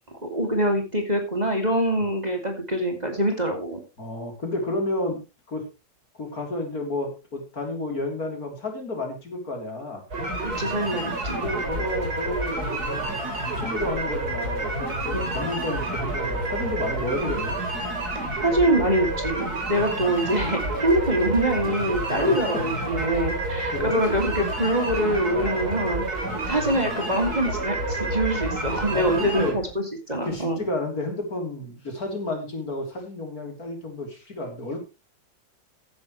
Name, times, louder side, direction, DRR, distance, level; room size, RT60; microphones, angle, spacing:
voice 1, 0.2-3.8 10.4-11.4 15.1-15.3 17.2-17.4 18.4-26.1 26.4-30.6, right 1 dB, 20° right, 3 dB, 2.7 m, -24 dB
voice 2, 4.0-5.2 5.5-5.6 6.2-10.0 11.4-13.1 13.5-17.6 22.1-22.5 23.7-24.0 25.3-25.7 26.2-26.5 28.9-29.6 30.1-34.8, left 1 dB, 55° left, 3 dB, 4.1 m, -31 dB
sound 1, 10.1-29.5, right 2 dB, 60° right, 4.5 m, -29 dB
sound 2, 10.5-29.7, right 2 dB, 25° left, 4.3 m, -42 dB
15.5 x 10.5 x 3.2 m, 0.28 s
omnidirectional pair, 1.9 m